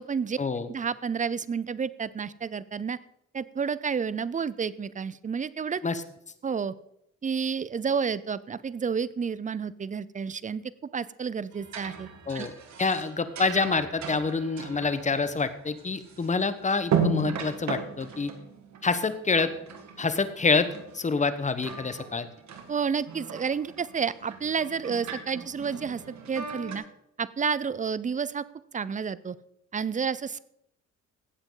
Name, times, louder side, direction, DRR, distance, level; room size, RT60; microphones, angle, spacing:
voice 1, 0.0-0.4 0.7-3.0 3.3-5.8 6.4-6.7 7.2-10.6 10.9-12.1 12.3-12.5 22.7-26.0 26.3-26.8 27.2-28.4 28.7-29.4 29.7-30.4, right 6 dB, 25° right, 18 dB, 0.5 m, -30 dB
sound 1, 11.5-16.5 16.8-20.3 20.6-21.3 21.6-26.8, right 5 dB, 65° right, 2.0 m, -36 dB
voice 2, 12.8-18.3 18.8-19.5 20.0-20.7 20.9-22.3, left 4 dB, 25° left, 12 dB, 1.0 m, -27 dB
16.5 x 7.9 x 3.9 m, 0.79 s
cardioid pair, 90°, 30 cm